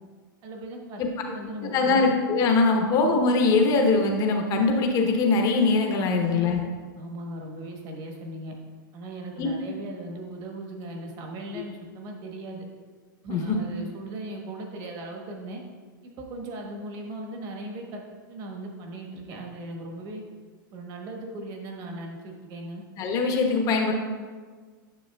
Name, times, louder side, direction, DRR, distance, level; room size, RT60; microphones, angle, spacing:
voice 1, 0.4-2.1 2.8-2.9 6.2-6.5 7.0-8.6 8.9-12.6 13.2-15.6 16.0-20.2 20.7-22.8, right 1 dB, 35° right, 1 dB, 1.3 m, -38 dB
voice 2, 1.6-6.6 9.4-9.5 13.3-13.6 23.0-23.9, left 3 dB, 30° left, 3 dB, 1.0 m, -22 dB
9.2 x 6.8 x 2.3 m, 1.5 s
hypercardioid pair, 140°, 11 cm